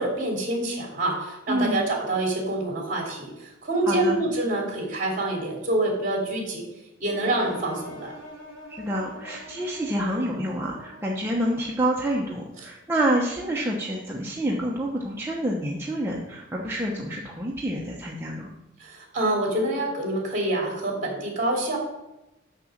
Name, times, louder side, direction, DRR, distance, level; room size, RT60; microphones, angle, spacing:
voice 1, 0.0-6.7 7.0-8.1 18.8-21.8, right 2 dB, 40° right, 0 dB, 3.0 m, -26 dB
voice 2, 1.5-1.8 3.8-4.2 8.7-18.5, right 1 dB, 10° right, -4 dB, 1.0 m, -28 dB
sound 1, 7.1-11.9, left 1 dB, 70° left, 2.5 m, -45 dB
6.6 x 6.2 x 7.4 m, 0.95 s
head